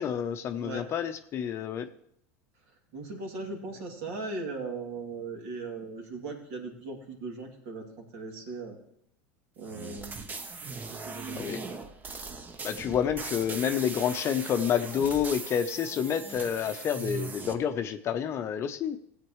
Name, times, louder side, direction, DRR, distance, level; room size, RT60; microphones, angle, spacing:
voice 1, 0.0-1.9 11.3-11.6 12.6-19.0, left 8 dB, 40° left, 8 dB, 0.6 m, -29 dB
voice 2, 2.9-7.8 8.1-8.8 9.6-10.2 11.0-11.5, right 3 dB, 65° right, 2 dB, 2.6 m, -38 dB
sound 1, 9.6-17.5, right 4 dB, 25° right, 0.8 m, -39 dB
16.0 x 8.1 x 3.1 m, 0.71 s
supercardioid pair, 115°, 7 cm